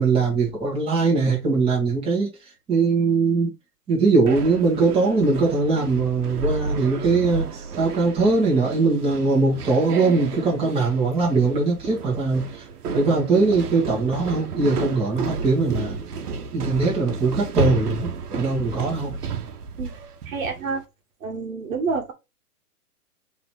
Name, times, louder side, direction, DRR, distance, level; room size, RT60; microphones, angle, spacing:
voice 1, 0.0-2.3 2.7-3.5 3.9-7.4 7.8-12.4 12.9-16.0 16.5-19.1, right 3 dB, 10° right, 1.6 m, -21 dB
sound 1, 4.3-20.7, right 4 dB, 75° right, 1.0 m, -31 dB
voice 2, 20.3-20.8 21.2-22.1, right 4 dB, 60° right, 1.4 m, -28 dB
3.8 x 3.0 x 4.6 m
hypercardioid pair, 140°, 46 cm